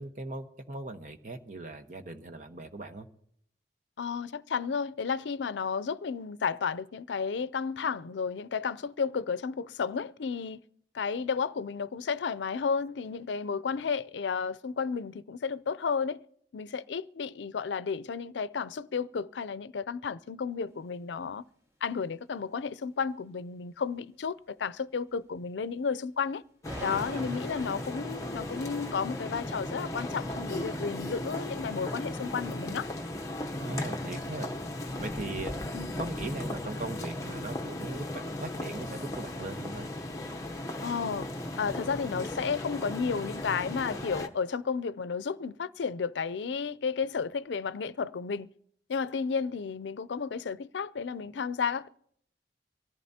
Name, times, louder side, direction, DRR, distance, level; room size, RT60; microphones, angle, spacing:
voice 1, 0.0-3.1 26.8-27.4 33.6-34.5 35.0-35.6 36.0-39.9, right 2 dB, 45° right, 1.1 m, -39 dB
voice 2, 4.0-10.6 10.9-16.2 16.5-21.4 21.8-26.4 26.8-32.9 35.7-35.9 40.8-41.3 41.6-48.5 48.9-51.9, left 5 dB, 90° left, 0.5 m, -32 dB
sound 1, 26.6-44.3, left 1 dB, 20° left, 0.8 m, -36 dB
sound 2, 26.7-30.6, equal, 15° right, 1.7 m, -46 dB
24.0 x 14.5 x 2.8 m
head